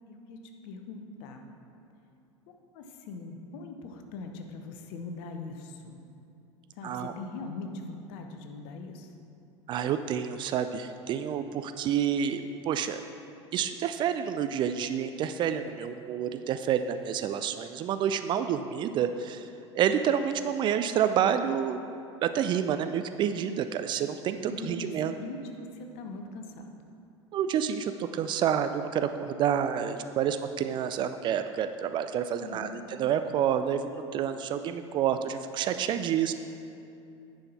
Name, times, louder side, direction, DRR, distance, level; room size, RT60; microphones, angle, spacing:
voice 1, 0.1-1.4 2.7-6.0 6.8-9.1 24.4-26.8 32.4-32.8, left 3 dB, 50° left, 5 dB, 0.9 m, -41 dB
voice 2, 6.8-7.2 9.7-13.0 13.5-19.5 19.7-21.9 22.2-25.1 27.3-36.3, right 8 dB, 30° right, 10 dB, 0.3 m, -29 dB
10.0 x 5.6 x 4.2 m, 2.6 s
figure-of-eight pair, 80°, 16 cm